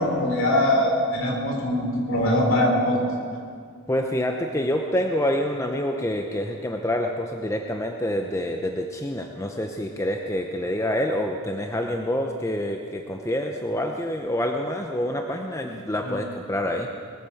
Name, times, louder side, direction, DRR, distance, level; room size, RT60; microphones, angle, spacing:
voice 1, 0.0-3.0 16.0-16.1, left 1 dB, 60° left, 0 dB, 3.6 m, -22 dB
voice 2, 3.9-16.9, left 1 dB, 15° left, 3 dB, 0.7 m, -27 dB
20.0 x 10.0 x 7.0 m, 2.1 s
head